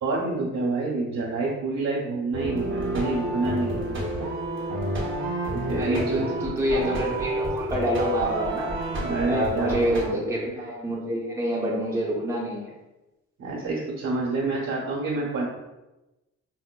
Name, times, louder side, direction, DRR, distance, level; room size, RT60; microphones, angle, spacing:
voice 1, 0.0-3.9 5.5-6.3 8.9-10.0 13.4-15.4, right 3 dB, 65° right, -7 dB, 1.2 m, -27 dB
sound 1, 2.3-10.1, right 2 dB, 40° right, 0.9 m, -29 dB
voice 2, 5.8-8.7 9.2-12.7, equal, 10° right, -5 dB, 0.8 m, -27 dB
5.0 x 2.1 x 2.2 m, 1.0 s
cardioid pair, 90°, 30 cm